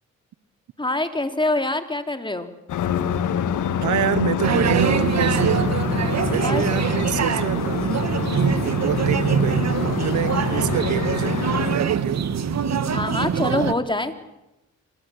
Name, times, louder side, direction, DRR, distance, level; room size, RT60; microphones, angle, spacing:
voice 1, 0.8-2.5 6.4-6.6 8.3-8.6 12.9-14.1, left 2 dB, 15° left, 7 dB, 3.4 m, -25 dB
sound 1, 2.7-11.8, left 9 dB, 85° left, 1.8 m, -26 dB
voice 2, 3.8-5.7 6.3-11.4 11.7-12.3, right 11 dB, 85° right, 17 dB, 1.1 m, -27 dB
sound 2, 4.4-13.7, right 7 dB, 60° right, 1.7 m, -23 dB
26.0 x 21.5 x 8.6 m, 0.92 s
cardioid pair, 60°, 30 cm